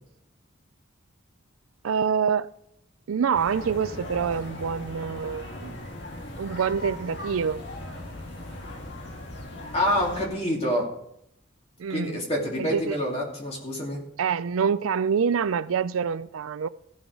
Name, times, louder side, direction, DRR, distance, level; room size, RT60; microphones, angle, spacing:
voice 1, 1.8-2.5 3.1-5.8 6.4-7.6 11.8-12.2 12.6-13.0 14.2-16.7, right 6 dB, 90° right, 0.4 m, -26 dB
sound 1, 3.3-10.3, left 1 dB, 55° left, 1.8 m, -38 dB
voice 2, 9.7-10.9 11.9-14.0, equal, 30° left, 2.6 m, -27 dB
15.0 x 6.3 x 4.7 m
head